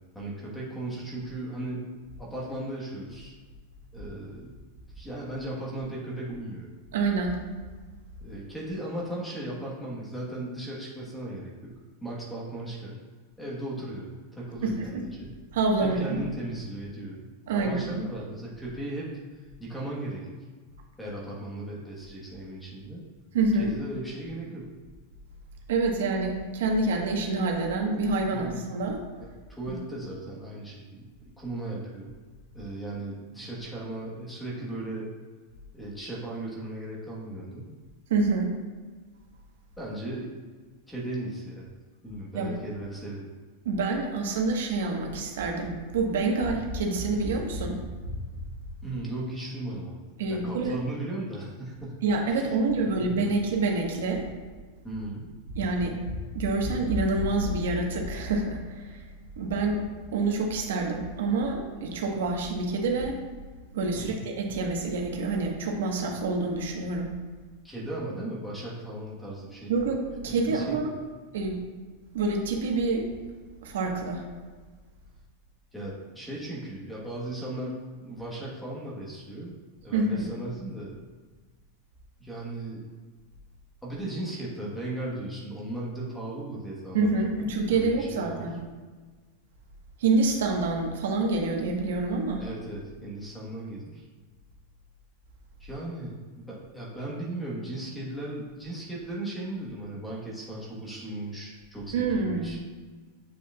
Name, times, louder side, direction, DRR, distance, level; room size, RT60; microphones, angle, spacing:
voice 1, 0.1-1.9 2.2-3.3 3.9-4.5 4.9-6.7 8.2-13.0 13.4-15.3 15.8-17.2 17.5-19.1 19.6-20.4 21.0-23.0 23.5-24.7 28.3-28.6 29.2-32.1 32.5-35.1 35.7-37.7 39.8-40.4 40.9-41.7 42.0-43.3 48.8-50.0 50.3-52.5 52.8-53.3 54.8-55.3 63.9-64.2 67.6-69.7 70.3-70.9 75.7-79.5 79.8-80.9 82.2-82.8 83.8-88.5 92.4-94.0 95.6-102.6, right 1 dB, 5° left, -5 dB, 1.2 m, -37 dB
voice 2, 6.9-7.4 14.6-15.0 15.5-16.2 17.5-17.8 23.3-23.7 25.7-29.0 29.7-29.8 38.1-38.5 42.3-42.5 43.6-48.2 50.2-50.8 52.0-54.3 55.5-59.0 59.4-59.8 60.1-63.2 63.7-67.1 69.7-71.0 71.3-71.6 72.1-73.1 73.6-74.2 79.9-80.3 86.9-88.6 90.0-92.4 101.9-102.6, right 3 dB, 85° right, 1 dB, 1.2 m, -27 dB
7.4 x 6.6 x 2.3 m, 1.4 s
supercardioid pair, 170°, 0 cm